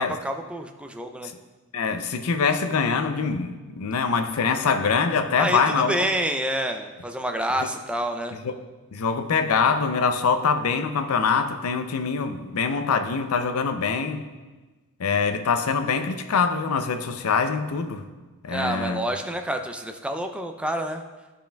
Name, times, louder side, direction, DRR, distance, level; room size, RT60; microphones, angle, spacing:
voice 1, 0.0-1.3 5.4-8.4 18.5-21.0, right 1 dB, 5° right, 5 dB, 0.4 m, -28 dB
voice 2, 1.7-5.9 7.6-7.7 8.4-8.5 8.9-14.2 15.0-18.0 18.4-19.0, left 5 dB, 85° left, 9 dB, 0.5 m, -24 dB
11.0 x 5.2 x 2.3 m, 1.3 s
head